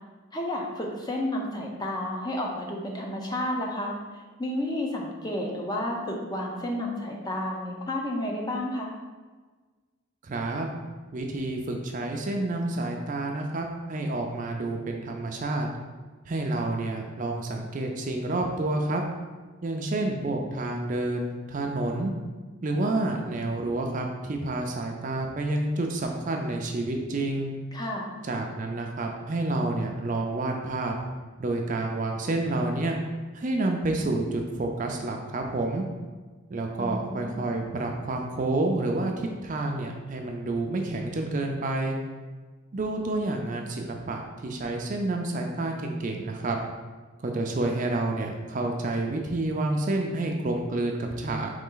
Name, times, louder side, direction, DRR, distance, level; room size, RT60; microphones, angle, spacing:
voice 1, 0.3-8.9 27.7-28.1 36.8-37.4, left 1 dB, 20° left, -1 dB, 0.5 m, -31 dB
voice 2, 10.2-10.7 11.1-15.7 16.3-19.0 19.6-22.1 22.6-27.5 28.2-30.9 31.4-33.0 33.3-35.8 36.5-42.0 42.7-46.6 47.2-51.5, right 2 dB, 40° right, 2 dB, 0.4 m, -29 dB
4.0 x 3.2 x 3.8 m, 1.4 s
head